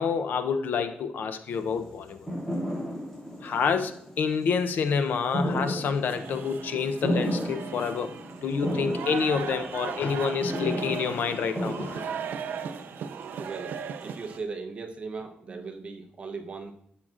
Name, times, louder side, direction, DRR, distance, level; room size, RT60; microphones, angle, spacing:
voice 1, 0.0-2.2 3.4-8.1 8.4-12.1, left 6 dB, 65° left, 9 dB, 0.6 m, -28 dB
sound 1, 1.5-14.4, equal, 10° left, 3.4 m, -35 dB
sound 2, 6.1-14.4, right 7 dB, 65° right, 0.4 m, -37 dB
voice 2, 13.4-13.8 14.0-16.7, right 4 dB, 35° right, 4 dB, 0.8 m, -38 dB
12.0 x 7.5 x 2.5 m, 0.71 s
wide cardioid pair, 175°, 3 cm